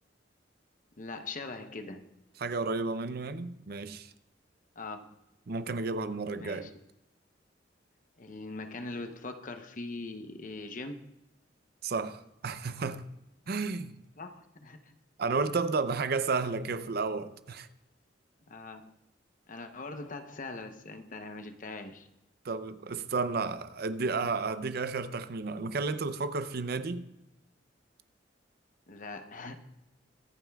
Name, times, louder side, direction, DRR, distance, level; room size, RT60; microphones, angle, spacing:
voice 1, 0.9-2.1 4.7-5.0 6.4-6.7 8.2-11.0 14.2-15.0 18.5-18.9 19.5-22.1 28.9-29.6, left 3 dB, 45° left, 0.8 m, -41 dB
voice 2, 2.4-4.1 5.5-6.7 11.8-13.1 13.5-14.0 15.2-17.7 22.4-27.1, right 4 dB, 55° right, 0.6 m, -32 dB
24.0 x 9.0 x 2.3 m
head